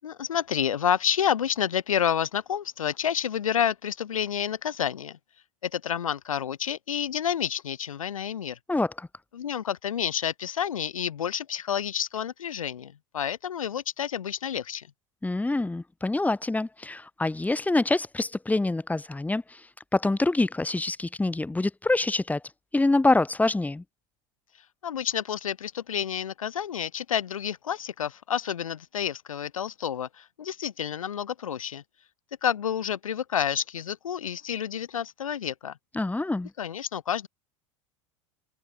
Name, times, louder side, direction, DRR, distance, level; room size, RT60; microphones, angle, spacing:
voice 1, 0.0-5.2 5.6-8.6 9.3-14.9 24.8-31.8 32.4-35.8 36.6-37.3, left 9 dB, 80° left, 7.4 m, -29 dB
voice 2, 8.7-9.1 15.2-19.7 19.9-22.4 22.7-23.8 35.9-36.5, left 2 dB, 10° left, 5.0 m, -25 dB
figure-of-eight pair, 85°, 17 cm